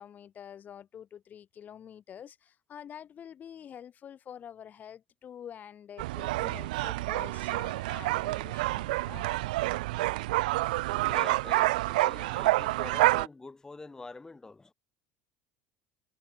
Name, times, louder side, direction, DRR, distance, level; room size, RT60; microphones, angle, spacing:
voice 1, 0.0-9.3, left 9 dB, 40° left, 5.8 m, -47 dB
sound 1, 6.0-13.3, right 19 dB, 85° right, 0.5 m, -28 dB
voice 2, 10.9-14.7, left 3 dB, 15° left, 1.2 m, -45 dB
supercardioid pair, 100°, 4 cm